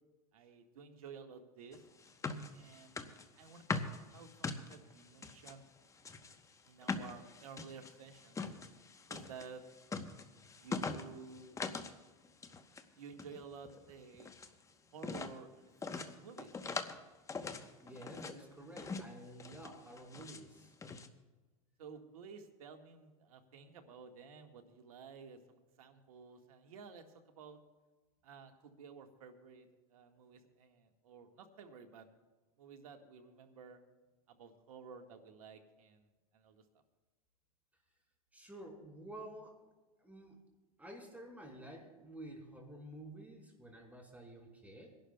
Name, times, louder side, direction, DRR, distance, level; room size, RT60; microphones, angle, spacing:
voice 1, 0.3-1.8 2.5-5.7 6.7-8.4 9.1-9.6 10.5-11.6 13.0-14.3 14.9-16.8 21.8-27.6 28.2-32.1 32.6-33.8 34.3-36.1 36.3-36.6, right 5 dB, 75° right, 5 dB, 1.6 m, -53 dB
Footsteps on the creaking wooden stairs up and down, 1.7-5.5 6.0-12.0 12.2-12.8 13.1-14.5 15.0-15.4 15.8-17.0 17.3-18.4 18.8-19.1 19.4-20.4 20.8-21.1, left 4 dB, 15° left, 0.9 m, -42 dB
voice 2, 17.8-20.7 38.3-39.5 40.0-40.4 40.8-44.9, right 1 dB, 10° right, -1 dB, 4.1 m, -51 dB
27.5 x 11.5 x 2.3 m, 1.2 s
hypercardioid pair, 100°, 18 cm